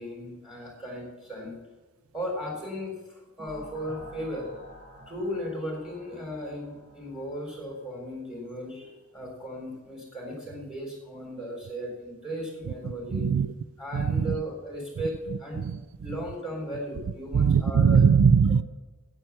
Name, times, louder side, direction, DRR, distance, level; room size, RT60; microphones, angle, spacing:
voice 1, 0.0-1.6 2.1-4.5 5.1-13.3 13.8-15.6 16.0-18.0, equal, 5° right, 3.7 m, -36 dB
sound 1, 3.4-8.1, equal, 45° right, 3.2 m, -49 dB
voice 2, 13.1-13.5 13.9-14.4 15.6-15.8 17.3-18.6, right 6 dB, 70° right, 0.4 m, -20 dB
9.1 x 9.0 x 7.1 m
head